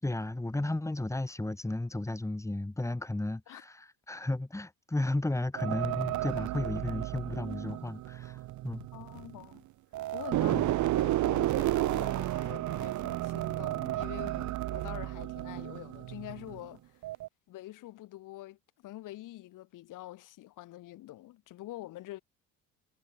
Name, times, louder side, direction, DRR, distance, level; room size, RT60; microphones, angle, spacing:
voice 1, 0.0-8.9 10.5-10.7, left 2 dB, 10° left, 4.8 m, -34 dB
sound 1, 5.6-9.6 9.9-16.7 17.0-17.3, right 15 dB, 60° right, 1.4 m, -32 dB
voice 2, 8.9-9.7 10.1-17.0 17.5-22.2, left 16 dB, 70° left, 7.4 m, -46 dB
supercardioid pair, 95°, 33 cm